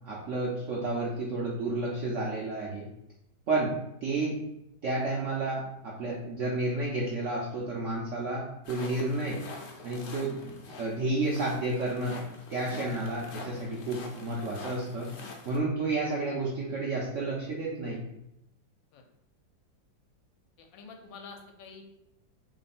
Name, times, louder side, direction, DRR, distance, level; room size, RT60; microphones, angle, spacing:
voice 1, 0.0-2.9 3.5-3.7 4.0-4.4 4.8-9.4 9.8-12.2 12.5-15.1 15.5-18.0, right 2 dB, 70° right, -3 dB, 0.7 m, -31 dB
sound 1, 8.6-15.6, left 3 dB, 60° left, 0.8 m, -45 dB
voice 2, 20.6-21.8, left 4 dB, 85° left, 3 dB, 1.4 m, -47 dB
3.2 x 3.1 x 4.2 m, 0.83 s
omnidirectional pair, 2.1 m